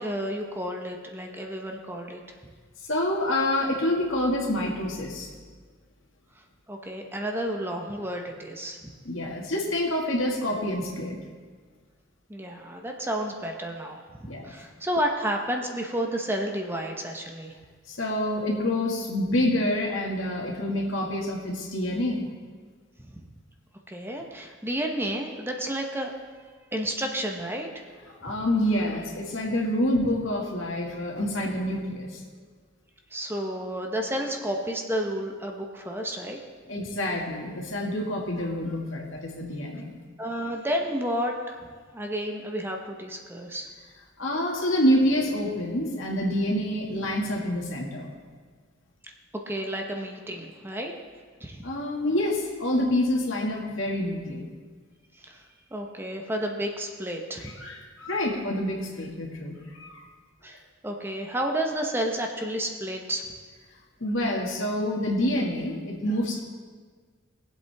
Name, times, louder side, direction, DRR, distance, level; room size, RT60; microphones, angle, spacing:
voice 1, 0.0-2.2 6.7-8.9 12.3-17.5 23.0-23.1 23.9-26.1 26.7-27.9 30.0-30.1 33.1-36.4 40.2-41.6 41.9-43.7 49.5-50.9 51.4-51.7 55.2-55.4 55.7-57.6 60.4-63.3, equal, 10° right, 2 dB, 0.9 m, -31 dB
voice 2, 2.8-5.3 9.0-11.2 14.3-14.5 17.9-22.2 28.2-32.2 36.7-39.9 44.2-48.1 51.6-54.5 57.4-60.0 64.0-66.4, left 1 dB, 75° left, -1 dB, 2.0 m, -27 dB
20.5 x 7.9 x 3.5 m, 1.5 s
head